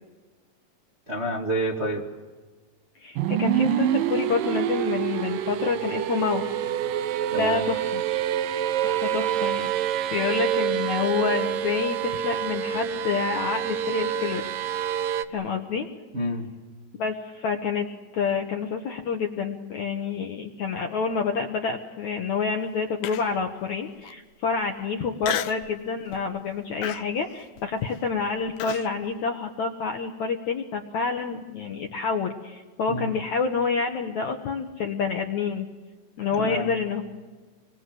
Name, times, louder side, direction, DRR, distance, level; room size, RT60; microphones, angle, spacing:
voice 1, 1.1-2.1 7.3-7.6 16.1-16.5 32.9-33.1 36.4-36.7, right 1 dB, 30° right, -1 dB, 1.3 m, -28 dB
voice 2, 3.0-6.5 7.3-8.0 8.8-14.5 15.3-15.9 17.0-17.9 18.1-35.7 36.2-37.0, left 5 dB, 65° left, 3 dB, 1.9 m, -28 dB
sound 1, 3.2-15.3, right 10 dB, 75° right, 2.1 m, -27 dB
Human voice, 23.0-23.5 24.0-24.1 25.2-25.7 26.1-26.4 26.8-28.9, left 12 dB, 90° left, 3.2 m, -32 dB
27.0 x 22.5 x 7.7 m, 1.3 s
omnidirectional pair, 4.9 m